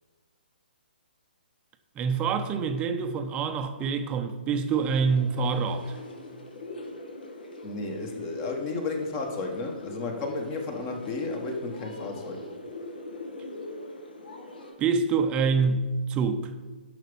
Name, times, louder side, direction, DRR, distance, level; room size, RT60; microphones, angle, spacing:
voice 1, 2.0-6.0 14.8-16.4, right 5 dB, 20° right, 0.7 m, -26 dB
sound 1, 4.7-14.7, left 2 dB, 65° left, 2.0 m, -42 dB
voice 2, 7.6-12.5, left 3 dB, 30° left, 1.6 m, -33 dB
11.5 x 5.9 x 5.3 m
figure-of-eight pair, 130°, 5 cm